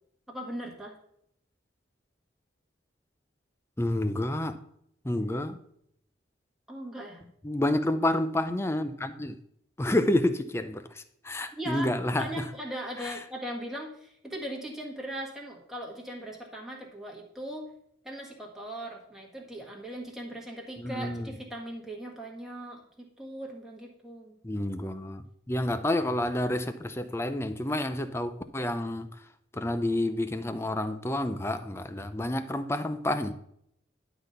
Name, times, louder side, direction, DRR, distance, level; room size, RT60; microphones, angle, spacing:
voice 1, 0.3-1.0 6.7-7.2 11.6-11.9 12.2-17.7 18.0-24.3, right 1 dB, ahead, -2 dB, 1.6 m, -39 dB
voice 2, 3.8-4.6 5.0-5.6 7.4-9.4 9.8-12.4 13.0-13.2 20.8-21.3 24.4-29.1 29.5-33.3, left 1 dB, 15° left, 10 dB, 0.5 m, -29 dB
11.0 x 4.1 x 6.6 m, 0.72 s
head